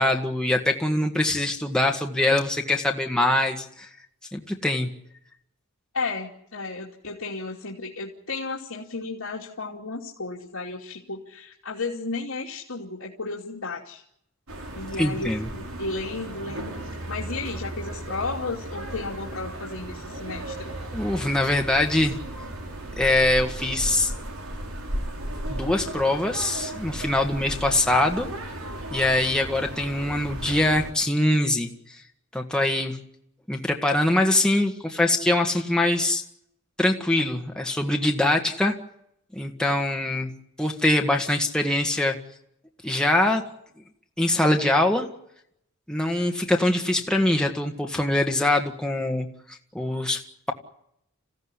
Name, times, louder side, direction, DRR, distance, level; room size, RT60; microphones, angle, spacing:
voice 1, 0.0-3.9 4.3-4.9 15.0-15.5 20.9-22.2 23.0-24.1 25.5-28.3 28.9-32.0 32.3-33.0 33.5-36.2 36.8-38.7 39.4-40.3 40.6-42.2 42.8-43.4 44.2-45.1 45.9-49.3 49.7-50.5, left 1 dB, 5° left, 1 dB, 1.8 m, -23 dB
voice 2, 5.9-14.0 14.7-16.7 17.1-20.7, left 3 dB, 75° left, -3 dB, 2.8 m, -33 dB
sound 1, 14.5-30.9, right 1 dB, 80° right, 5.1 m, -35 dB
27.5 x 16.0 x 9.9 m, 0.76 s
head